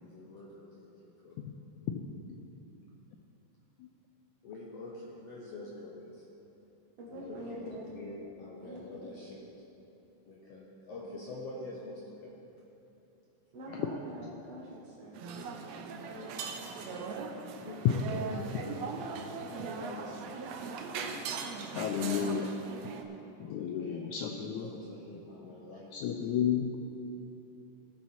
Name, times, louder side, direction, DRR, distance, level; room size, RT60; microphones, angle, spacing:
voice 1, 0.0-1.4 4.4-6.3 7.1-9.5 10.3-12.3 16.0-20.5 21.7-22.5 23.6-26.1, left 2 dB, 65° left, -3 dB, 1.6 m, -46 dB
voice 2, 7.0-7.9 8.6-9.2 11.0-11.1 13.5-15.2, right 1 dB, 55° right, -5 dB, 2.4 m, -44 dB
sound 1, 15.1-23.0, right 5 dB, 90° right, 1.5 m, -40 dB
voice 3, 21.6-22.5 23.4-24.7 25.9-26.8, left 8 dB, 85° left, 3 dB, 1.7 m, -32 dB
17.0 x 7.1 x 4.3 m, 2.9 s
omnidirectional pair, 4.0 m